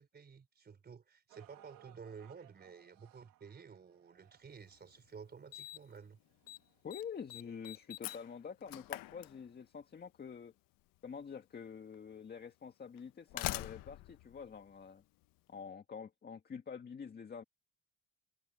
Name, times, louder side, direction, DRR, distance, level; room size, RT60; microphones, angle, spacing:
voice 1, 0.0-6.2, right 6 dB, 30° right, 4.2 m, -53 dB
sound 1, 1.3-7.5 8.2-8.3 9.1-9.2, right 15 dB, 80° right, 3.0 m, -65 dB
Slam, 4.7-4.8 5.5-6.0 6.3-6.6 6.9-9.8 11.0-11.1 11.9-12.0 13.0-15.3, left 15 dB, 80° left, 1.2 m, -44 dB
voice 2, 6.8-10.5 11.0-15.0 15.5-17.4, left 6 dB, 30° left, 1.7 m, -47 dB
cardioid pair, 140°, 33 cm